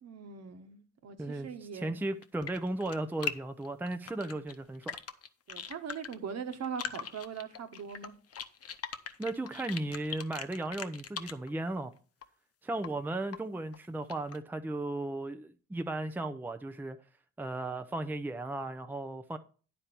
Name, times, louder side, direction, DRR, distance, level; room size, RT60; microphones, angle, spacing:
voice 1, 0.0-1.9 5.5-8.1, right 6 dB, 60° right, 1.3 m, -41 dB
voice 2, 1.2-5.0 9.2-11.9 12.6-17.0 17.4-19.4, right 2 dB, 5° right, 0.6 m, -36 dB
sound 1, 2.2-3.3 3.6-6.1 6.5-11.5 12.2-12.3 12.8-12.9 13.3-13.4 13.7-14.4, left 8 dB, 50° left, 0.9 m, -40 dB
9.7 x 4.4 x 6.8 m
cardioid pair, 90°, 30 cm